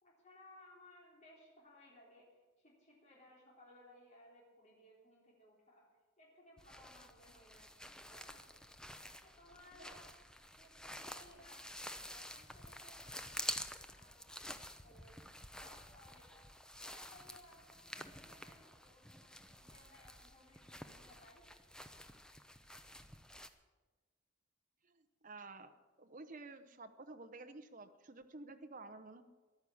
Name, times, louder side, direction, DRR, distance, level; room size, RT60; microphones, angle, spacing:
voice 1, 0.0-5.9 6.2-8.7 9.2-10.1 10.6-11.7 12.1-13.5 13.9-15.2 15.6-16.6 16.9-21.4, left 1 dB, 35° left, -3 dB, 3.5 m, -62 dB
sound 1, 6.6-23.5, left 1 dB, 5° left, 0.6 m, -49 dB
voice 2, 24.9-25.7 26.0-29.2, right 3 dB, 40° right, 7 dB, 0.8 m, -52 dB
14.0 x 11.0 x 7.1 m, 1.3 s
head